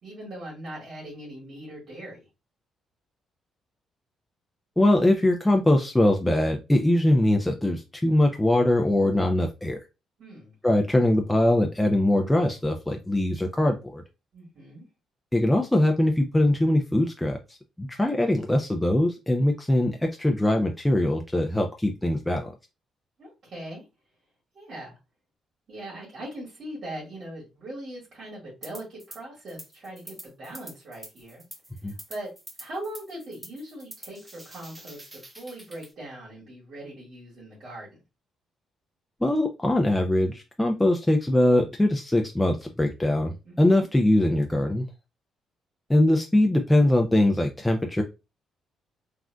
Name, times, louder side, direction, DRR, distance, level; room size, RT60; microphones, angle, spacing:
voice 1, 0.0-2.3 10.2-10.5 14.3-14.9 23.2-23.8 24.5-25.0 25.7-31.4 31.8-32.3 32.6-37.9 43.4-43.9, right 1 dB, 60° right, -5 dB, 1.8 m, -40 dB
voice 2, 4.8-9.8 10.6-14.0 15.3-22.5 31.8-31.9 39.2-44.8 45.9-48.0, left 1 dB, 10° left, 2 dB, 0.4 m, -22 dB
sound 1, 28.6-29.2 29.5-35.9, right 1 dB, 15° right, 0.8 m, -46 dB
3.5 x 2.4 x 2.2 m, 0.27 s
cardioid pair, 90°, 0 cm